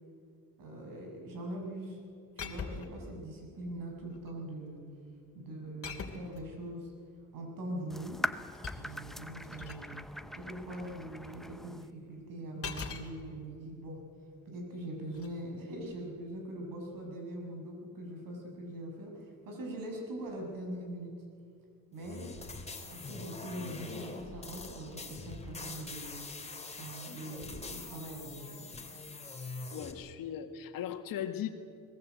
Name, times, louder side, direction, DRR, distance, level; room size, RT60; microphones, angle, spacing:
voice 1, 0.6-2.0 2.4-4.8 5.3-6.9 7.3-8.2 8.8-10.0 10.3-14.0 14.4-21.1 21.9-22.3 22.7-26.2 26.8-28.7, right 1 dB, 75° right, 1 dB, 6.7 m, -42 dB
sound 1, 2.4-3.0 4.0-4.4 5.8-6.4 8.1-9.9 12.6-13.1 15.1-15.3, left 5 dB, 40° left, 2.9 m, -42 dB
sound 2, 7.9-11.9, equal, ahead, 0.8 m, -41 dB
sound 3, 22.0-29.9, left 3 dB, 20° left, 3.1 m, -44 dB
voice 2, 29.7-31.5, left 10 dB, 90° left, 7 dB, 1.9 m, -38 dB
22.0 x 21.0 x 8.2 m, 2.3 s
cardioid pair, 100°, 33 cm